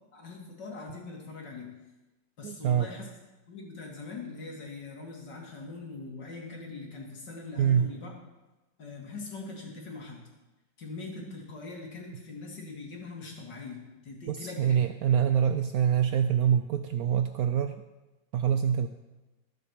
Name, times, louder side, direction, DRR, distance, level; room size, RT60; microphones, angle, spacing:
voice 1, 0.1-1.7 2.4-3.1 3.5-8.1 8.8-10.2 10.8-14.8, left 3 dB, 70° left, -1 dB, 2.8 m, -42 dB
voice 2, 2.4-2.9 7.6-7.9 14.3-17.8 18.3-18.9, right 8 dB, 75° right, 8 dB, 0.8 m, -25 dB
12.5 x 6.6 x 6.5 m, 1.1 s
omnidirectional pair, 2.0 m